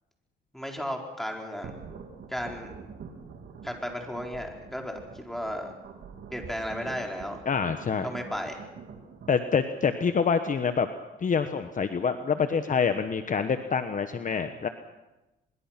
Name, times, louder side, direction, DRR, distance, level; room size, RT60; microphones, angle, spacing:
voice 1, 0.5-1.7 2.3-2.7 3.6-5.7 6.3-7.4 8.0-8.6, equal, ahead, 2 dB, 4.4 m, -34 dB
sound 1, 1.6-9.4, right 6 dB, 65° right, 3.7 m, -46 dB
Sigh, 6.4-7.1, left 8 dB, 85° left, 5.1 m, -47 dB
voice 2, 7.5-8.1 9.3-10.9 11.2-14.7, left 6 dB, 40° left, 9 dB, 1.2 m, -26 dB
23.5 x 22.5 x 6.0 m, 1.0 s
cardioid pair, 90°, 20 cm